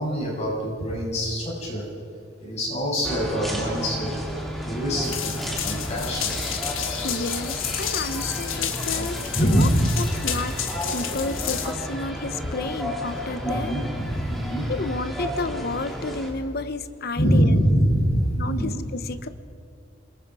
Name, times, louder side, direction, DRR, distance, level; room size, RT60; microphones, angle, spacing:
voice 1, 0.0-1.8 2.4-4.1 4.6-5.3 5.6-6.3 9.3-9.8 13.4-14.6 17.2-18.8, equal, 35° left, -5 dB, 7.9 m, -24 dB
sound 1, 3.0-16.3, equal, ahead, 3.0 m, -32 dB
sound 2, 5.0-11.7, left 9 dB, 85° left, 1.5 m, -31 dB
voice 2, 7.0-9.7 10.0-10.6 10.9-13.7 14.7-17.6 18.4-19.3, left 3 dB, 50° left, 11 dB, 0.9 m, -31 dB
28.5 x 21.5 x 4.9 m, 2.4 s
head